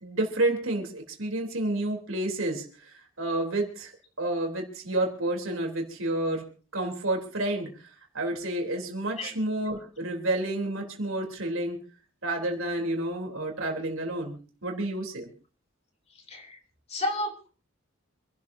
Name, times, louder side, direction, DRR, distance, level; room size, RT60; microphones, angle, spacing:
voice 1, 0.0-3.9 4.2-6.4 6.7-7.7 8.1-11.8 12.2-15.3, right 1 dB, 85° right, 2 dB, 3.5 m, -30 dB
voice 2, 16.9-17.5, left 1 dB, 30° left, 4 dB, 3.1 m, -31 dB
27.5 x 12.5 x 2.8 m, 0.38 s
head